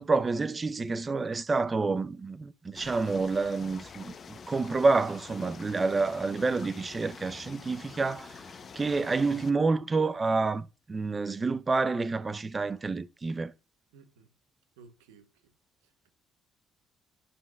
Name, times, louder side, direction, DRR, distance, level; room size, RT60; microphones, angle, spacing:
voice 1, 0.0-8.5 8.7-13.5, right 3 dB, 30° right, 0.6 m, -28 dB
sound 1, 2.7-9.5, left 6 dB, 45° left, 0.7 m, -47 dB
voice 2, 13.9-14.3 14.8-15.5 15.8-16.1, right 5 dB, 90° right, 0.9 m, -57 dB
11.0 x 5.4 x 2.3 m
hypercardioid pair, 60°, 0 cm